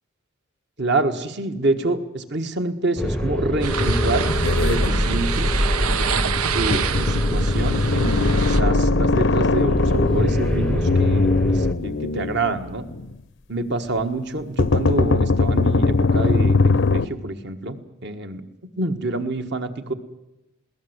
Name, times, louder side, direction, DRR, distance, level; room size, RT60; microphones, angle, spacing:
voice 1, 0.8-4.3 4.6-5.7 6.5-12.9 13.5-18.4 18.8-19.9, right 2 dB, 50° right, 8 dB, 1.5 m, -27 dB
sound 1, 3.0-11.7, equal, 5° left, 0.7 m, -24 dB
sound 2, 3.6-5.6 6.4-6.5 6.7-13.1 14.6-17.1, left 3 dB, 55° left, 0.6 m, -21 dB
sound 3, 3.6-8.6, right 7 dB, 85° right, 0.9 m, -27 dB
21.5 x 17.5 x 8.0 m, 0.94 s
head